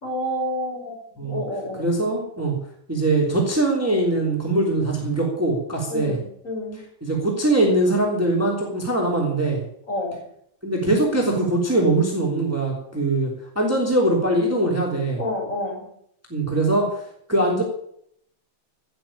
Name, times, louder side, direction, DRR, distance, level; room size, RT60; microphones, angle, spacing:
voice 1, 0.0-1.9 5.9-6.8 9.9-10.2 15.2-15.8, left 1 dB, 35° left, -1 dB, 5.8 m, -29 dB
voice 2, 1.8-2.5 2.9-6.2 7.0-9.6 10.6-13.3 13.5-15.2 16.3-17.0 17.3-17.6, right 2 dB, 5° right, -1 dB, 3.1 m, -22 dB
17.5 x 7.2 x 8.8 m, 0.69 s
omnidirectional pair, 2.3 m